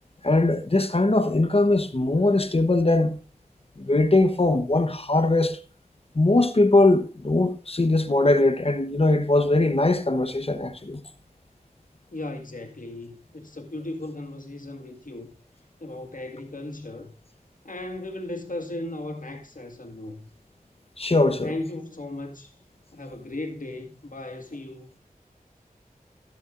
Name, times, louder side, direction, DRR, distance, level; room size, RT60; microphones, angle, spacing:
voice 1, 0.2-3.2 3.8-5.6 6.1-11.0 21.0-21.5, left 2 dB, 40° left, 1.0 m, -21 dB
voice 2, 12.1-15.3 15.8-17.2 17.6-20.3 21.2-22.5 22.9-24.9, left 2 dB, 60° left, 1.9 m, -36 dB
20.5 x 7.1 x 2.5 m
wide cardioid pair, 45°, 15 cm